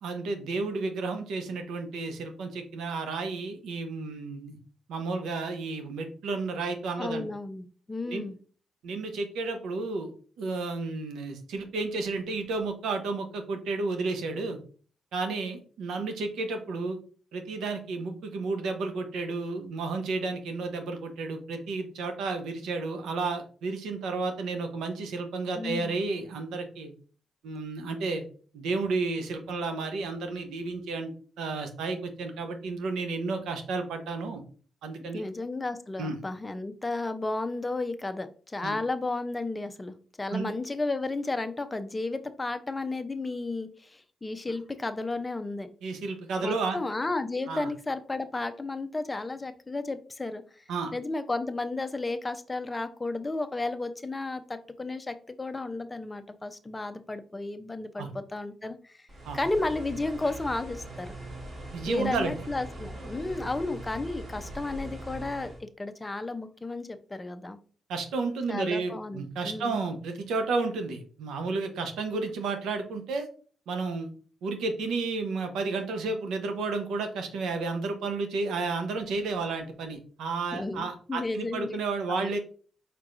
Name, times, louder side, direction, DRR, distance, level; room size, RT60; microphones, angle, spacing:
voice 1, 0.0-4.6 4.9-7.2 8.1-8.3 8.8-10.1 10.4-14.6 15.1-17.0 17.3-26.9 27.4-28.2 28.5-31.1 31.4-34.4 34.8-35.2 36.0-36.1 38.6-38.7 40.3-40.5 45.8-46.8 47.5-47.7 50.7-50.9 58.0-58.1 59.2-59.4 61.7-62.3 67.9-73.3 73.7-74.1 74.4-82.4, right 3 dB, 85° right, 6 dB, 0.8 m, -32 dB
voice 2, 7.0-8.4 25.6-25.9 35.1-45.7 46.4-50.6 50.9-59.1 59.3-61.1 61.9-67.6 68.5-69.9 80.5-81.8 82.1-82.3, left 2 dB, 20° left, 9 dB, 0.6 m, -33 dB
sound 1, 59.1-65.6, right 1 dB, 45° right, 1.8 m, -41 dB
4.6 x 3.7 x 2.5 m, 0.42 s
cardioid pair, 70°, 0 cm